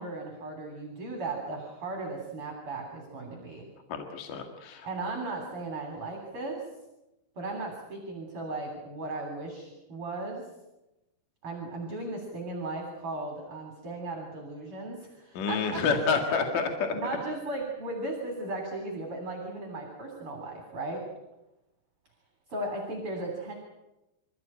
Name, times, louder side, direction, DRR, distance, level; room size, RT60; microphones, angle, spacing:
voice 1, 0.0-3.7 4.8-6.6 7.4-10.5 11.4-15.8 16.3-16.4 16.9-21.0 22.5-23.5, right 2 dB, 30° right, 2 dB, 3.6 m, -36 dB
voice 2, 3.9-4.9 15.3-16.9, left 5 dB, 55° left, 4 dB, 2.9 m, -28 dB
26.0 x 15.0 x 8.9 m, 0.97 s
omnidirectional pair, 5.6 m